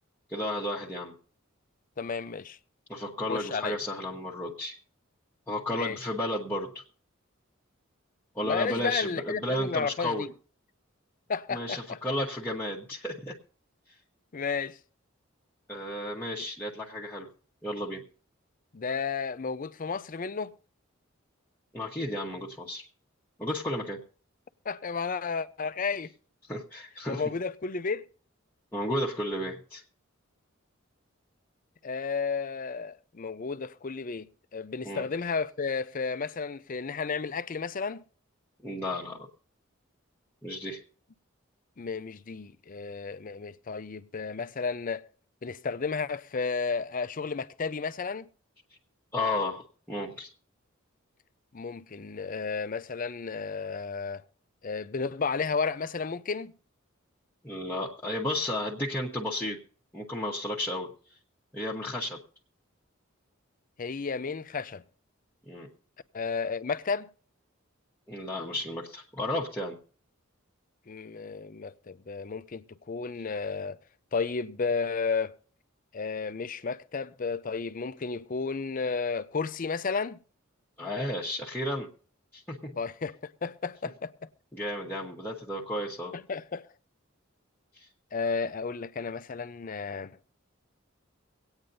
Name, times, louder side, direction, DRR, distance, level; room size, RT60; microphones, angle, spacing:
voice 1, 0.3-1.1 2.9-4.7 5.5-6.8 8.3-10.2 11.5-13.3 15.7-17.3 17.6-18.0 21.7-22.8 23.4-24.0 26.5-27.2 28.7-29.8 34.8-35.0 38.6-39.3 40.4-40.8 49.1-49.6 49.9-50.3 57.4-59.6 59.9-60.9 61.5-62.2 65.5-65.7 68.1-69.8 80.8-81.9 82.3-82.8 84.5-86.1 87.8-87.9, left 1 dB, 10° left, 1.1 m, -33 dB
voice 2, 2.0-2.6 3.3-3.8 5.7-6.0 8.4-10.3 11.3-12.0 14.3-14.8 18.7-20.5 24.7-26.1 27.1-28.0 31.8-34.3 34.5-38.0 41.8-45.0 45.4-48.3 51.5-54.2 54.6-56.5 63.8-64.8 66.1-67.1 70.9-73.8 74.1-75.3 75.9-80.2 82.8-84.3 86.1-86.7 88.1-90.1, left 5 dB, 40° left, 0.5 m, -32 dB
24.5 x 8.9 x 2.7 m
head